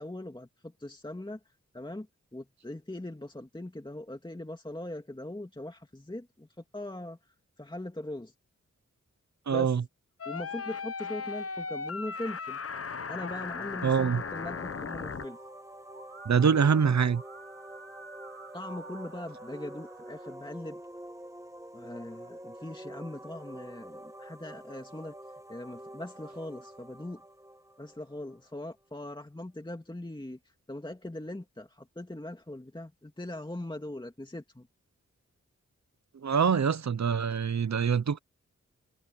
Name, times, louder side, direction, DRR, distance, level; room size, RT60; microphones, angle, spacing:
voice 1, 0.0-8.3 9.5-9.8 10.3-12.6 13.1-15.4 18.5-20.8 21.7-25.2 25.5-27.2 27.8-30.4 30.7-34.7, left 1 dB, 15° left, 2.4 m, -41 dB
voice 2, 9.5-9.8 13.8-14.2 16.3-17.2 36.2-38.2, right 6 dB, 65° right, 1.0 m, -24 dB
sound 1, 10.2-15.2, left 5 dB, 50° left, 0.9 m, -37 dB
sound 2, 14.0-28.7, right 1 dB, 10° right, 1.5 m, -47 dB
Musical instrument, 14.8-20.3, right 3 dB, 45° right, 5.6 m, -51 dB
wide cardioid pair, 65°, 30 cm